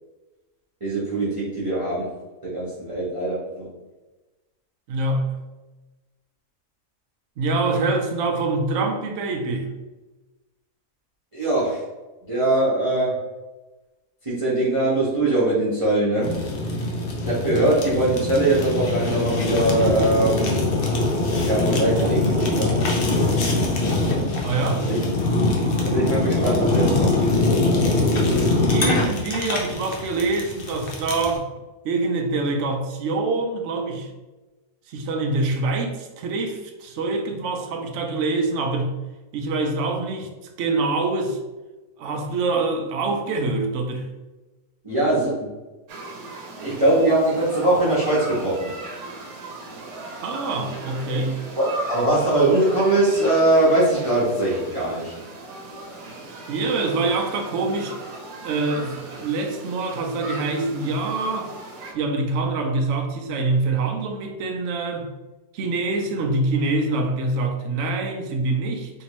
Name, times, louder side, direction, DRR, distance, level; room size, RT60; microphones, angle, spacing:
voice 1, 0.8-2.1 2.4-3.7 11.3-11.8 12.3-13.1 14.2-16.3 16.7-16.8 17.2-20.5 21.4-22.7 24.8-25.0 25.8-27.2 44.8-45.5 46.6-48.7 51.6-55.1, right 2 dB, 25° right, -9 dB, 0.8 m, -21 dB
voice 2, 4.9-5.3 7.4-9.7 24.4-24.9 28.7-31.4 31.8-34.1 34.9-38.9 39.3-40.3 40.6-41.4 42.0-44.1 50.2-51.4 56.5-57.9 58.4-61.5 61.9-65.1 65.5-68.9, right 3 dB, 65° right, 3 dB, 0.8 m, -25 dB
Fire, 16.2-31.4, left 2 dB, 70° left, 0.5 m, -23 dB
sound 1, 45.9-61.9, right 2 dB, 85° right, 1.3 m, -37 dB
3.4 x 2.8 x 2.9 m, 1.1 s
omnidirectional pair, 1.7 m